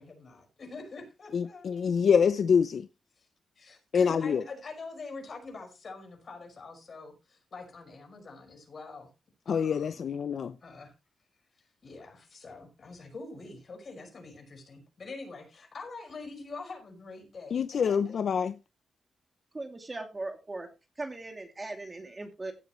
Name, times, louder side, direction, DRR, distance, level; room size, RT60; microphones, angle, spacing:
voice 1, 0.0-1.7 3.2-3.3 3.6-9.1 9.5-10.0 10.6-10.9 11.8-18.2, left 3 dB, 45° left, 5.4 m, -45 dB
voice 2, 1.3-2.9 3.9-4.4 9.5-10.5 17.5-18.5, left 6 dB, 60° left, 0.6 m, -26 dB
voice 3, 19.5-20.7 21.0-22.5, right 2 dB, 25° right, 2.6 m, -38 dB
16.5 x 8.1 x 3.1 m
wide cardioid pair, 115°, 0 cm